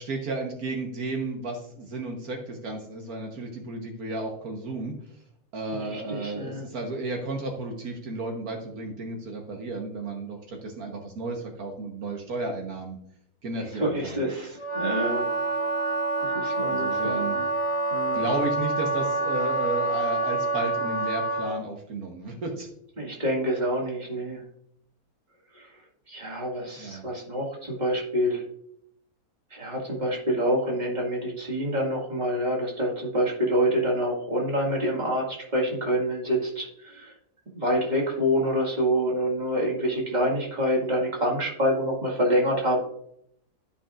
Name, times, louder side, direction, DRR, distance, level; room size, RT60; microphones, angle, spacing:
voice 1, 0.0-4.9 5.5-13.0 13.4-14.2 16.7-17.4 18.1-22.7 26.8-27.0, right 2 dB, 80° right, 2 dB, 1.7 m, -33 dB
voice 2, 5.7-6.6 13.7-15.6 16.2-17.5 17.9-18.2 23.0-24.4 25.6-25.7 26.1-28.4 29.5-35.2 35.5-37.1 37.5-42.8, equal, 30° right, -2 dB, 2.1 m, -27 dB
Wind instrument woodwind instrument, 14.6-21.6, right 2 dB, 5° right, 1.0 m, -27 dB
13.0 x 5.4 x 2.5 m, 0.71 s
omnidirectional pair, 1.5 m